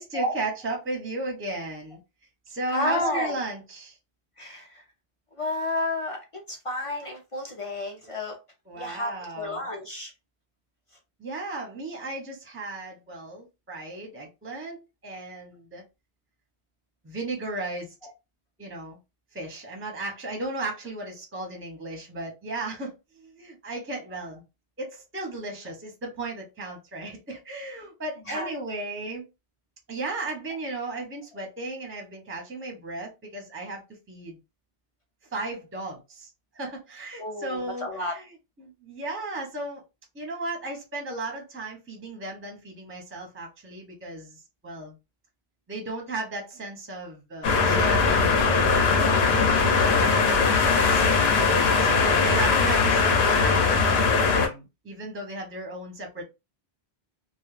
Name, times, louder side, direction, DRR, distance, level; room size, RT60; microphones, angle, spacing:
voice 1, 0.0-2.0 2.5-4.0 8.7-9.6 11.2-15.8 17.0-17.9 18.6-19.0 19.3-24.4 24.8-29.2 29.9-34.4 35.3-36.3 36.5-38.3 38.6-39.8 40.1-44.4 44.6-44.9 45.7-48.4 48.9-51.0 51.8-56.2, right 2 dB, 15° right, 0.6 m, -35 dB
voice 2, 2.7-3.3 4.4-4.8 5.3-8.4 8.7-10.1 28.3-28.5 37.2-38.2, left 1 dB, 45° left, 0.4 m, -31 dB
sound 1, 47.4-54.5, left 4 dB, 75° left, 0.9 m, -20 dB
2.3 x 2.0 x 3.1 m
omnidirectional pair, 1.1 m